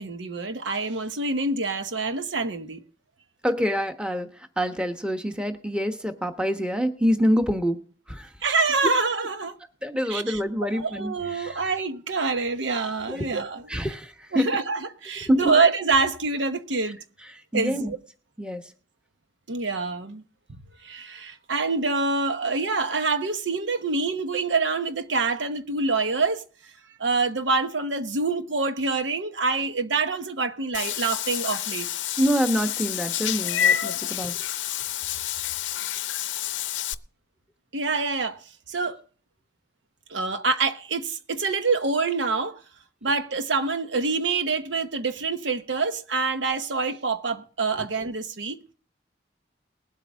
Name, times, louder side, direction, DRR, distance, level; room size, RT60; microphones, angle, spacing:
voice 1, 0.0-2.8 8.4-9.6 10.1-10.4 10.7-13.6 14.3-17.0 17.5-18.0 19.5-20.2 20.5-26.4 27.0-31.9 37.7-38.4 38.7-39.0 40.1-42.6 43.0-48.6, right 4 dB, 80° right, 1.0 m, -26 dB
voice 2, 3.4-4.3 4.6-7.8 8.1-8.3 9.8-11.5 13.1-13.3 13.7-14.5 15.3-15.5 17.5-17.9 18.4-18.6 32.2-34.3, equal, 5° right, 1.1 m, -26 dB
Meow / Water / Bathtub (filling or washing), 30.7-36.9, left 10 dB, 80° left, 0.6 m, -28 dB
20.0 x 8.2 x 3.5 m
head